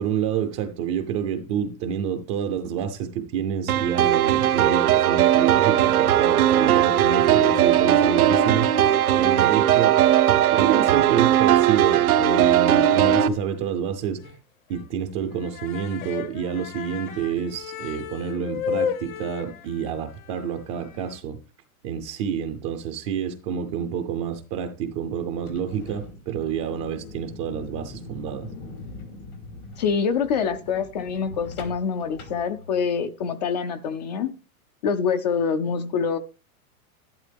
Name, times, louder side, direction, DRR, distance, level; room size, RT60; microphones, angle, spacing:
voice 1, 0.0-8.7 9.1-10.0 10.3-14.4 14.7-21.4 21.8-28.5, right 8 dB, 20° right, 0.5 m, -28 dB
sound 1, 3.7-13.3, right 11 dB, 90° right, 1.1 m, -19 dB
sound 2, 12.8-13.4 13.7-13.8 14.2-14.4 14.7-14.9 15.2-21.2, left 8 dB, 65° left, 1.5 m, -34 dB
sound 3, 25.3-33.1, left 3 dB, 85° left, 4.8 m, -42 dB
voice 2, 29.8-34.3 34.8-36.2, left 6 dB, 30° left, 0.5 m, -25 dB
11.5 x 11.0 x 3.4 m
supercardioid pair, 165°, 43 cm